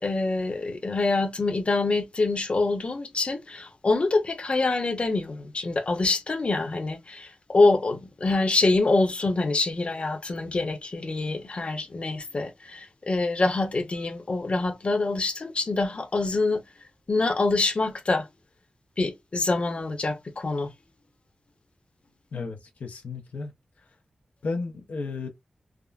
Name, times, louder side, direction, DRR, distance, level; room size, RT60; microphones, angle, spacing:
voice 1, 0.0-16.6 17.1-18.3 19.0-20.7, left 3 dB, 50° left, 0.8 m, -25 dB
voice 2, 22.3-23.5 24.4-25.3, left 4 dB, 85° left, 0.6 m, -33 dB
3.6 x 2.1 x 2.3 m
wide cardioid pair, 70°, 2 cm